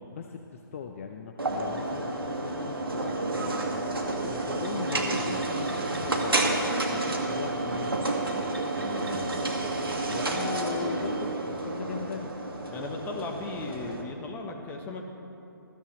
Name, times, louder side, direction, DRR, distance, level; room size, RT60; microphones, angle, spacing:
voice 1, 0.1-3.6 4.2-8.1 10.1-12.3, left 6 dB, 35° left, 4 dB, 0.7 m, -39 dB
sound 1, 1.4-14.0, right 2 dB, 80° right, 2.0 m, -30 dB
voice 2, 4.9-5.3 8.8-9.4 12.7-15.1, left 3 dB, 15° left, 1 dB, 1.2 m, -37 dB
21.0 x 14.0 x 3.3 m, 2.8 s
figure-of-eight pair, 140°, 12 cm